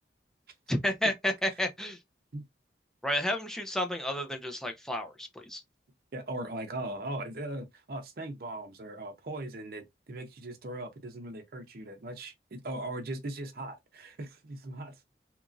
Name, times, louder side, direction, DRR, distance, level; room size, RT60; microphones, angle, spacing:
voice 1, 0.7-2.0 3.0-5.6, left 1 dB, 5° left, 0.4 m, -31 dB
voice 2, 6.1-15.0, right 1 dB, 55° right, 0.6 m, -39 dB
2.9 x 2.4 x 2.5 m
head